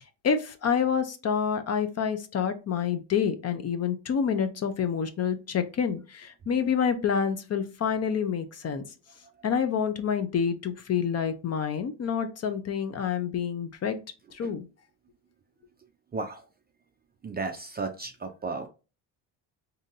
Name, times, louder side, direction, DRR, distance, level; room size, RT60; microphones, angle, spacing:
voice 1, 0.2-8.9 9.4-14.0 14.3-14.7, left 7 dB, 35° left, 10 dB, 0.5 m, -28 dB
voice 2, 17.2-18.7, right 3 dB, 25° right, 5 dB, 0.4 m, -34 dB
3.8 x 2.7 x 2.6 m, 0.31 s
supercardioid pair, 90°, 44 cm